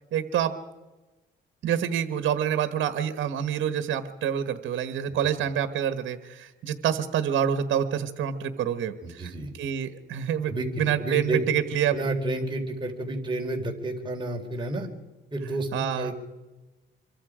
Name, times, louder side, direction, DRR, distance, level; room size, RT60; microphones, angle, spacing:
voice 1, 0.1-0.5 1.6-12.0 15.7-16.1, right 9 dB, 75° right, 11 dB, 1.3 m, -27 dB
voice 2, 9.0-9.5 10.5-11.4 11.9-14.9 15.3-16.2, right 2 dB, 25° right, 1 dB, 3.9 m, -30 dB
26.5 x 23.5 x 5.0 m, 1.2 s
cardioid pair, 90°, 20 cm